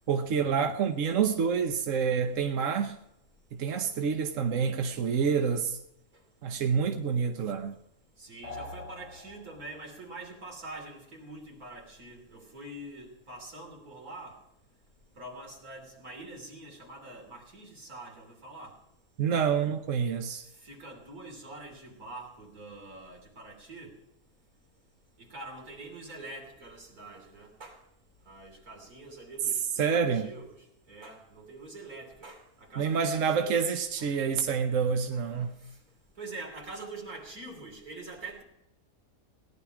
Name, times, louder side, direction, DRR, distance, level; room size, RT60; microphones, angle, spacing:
voice 1, 0.1-3.0 3.5-5.8 6.4-7.8 19.2-20.5 29.8-30.3 32.8-35.6, right 6 dB, 65° right, 1.2 m, -28 dB
voice 2, 5.0-5.5 6.1-6.2 8.2-14.4 15.2-18.8 20.6-23.9 25.2-27.8 28.3-33.6 34.0-34.2 35.1-35.8 36.2-38.4, right 2 dB, 80° right, 3.7 m, -45 dB
sound 1, 8.4-9.9, left 2 dB, 55° left, 2.9 m, -44 dB
18.0 x 11.0 x 4.9 m
omnidirectional pair, 1.5 m